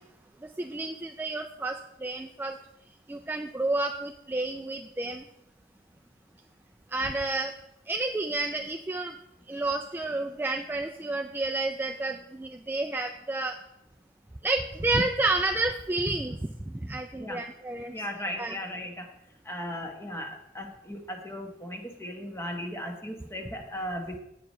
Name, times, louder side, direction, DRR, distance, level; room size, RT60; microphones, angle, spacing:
voice 1, 0.4-2.6 3.1-5.3 6.9-7.5 7.9-9.2 9.5-13.6 14.4-17.9 18.4-18.5, right 2 dB, 10° right, 3 dB, 0.3 m, -30 dB
voice 2, 17.9-19.1 19.4-24.2, equal, 15° left, 3 dB, 1.1 m, -37 dB
8.6 x 4.8 x 6.2 m, 0.85 s
head